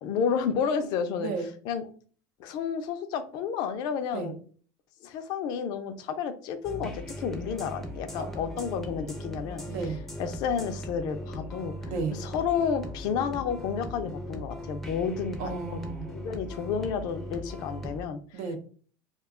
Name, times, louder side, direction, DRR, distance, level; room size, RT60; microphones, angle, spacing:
voice 1, 0.0-1.3 1.6-1.9 2.4-4.4 5.0-9.6 10.2-11.7 12.2-15.8 16.1-18.2, left 7 dB, 60° left, 8 dB, 0.5 m, -31 dB
voice 2, 1.2-1.5 4.1-4.3 8.2-8.6 9.7-10.0 11.9-12.2 15.4-16.1 18.3-18.6, right 4 dB, 80° right, 6 dB, 0.6 m, -33 dB
sound 1, 6.6-18.0, left 1 dB, ahead, 0.5 m, -39 dB
2.4 x 2.2 x 3.5 m, 0.43 s
cardioid pair, 135°, 8 cm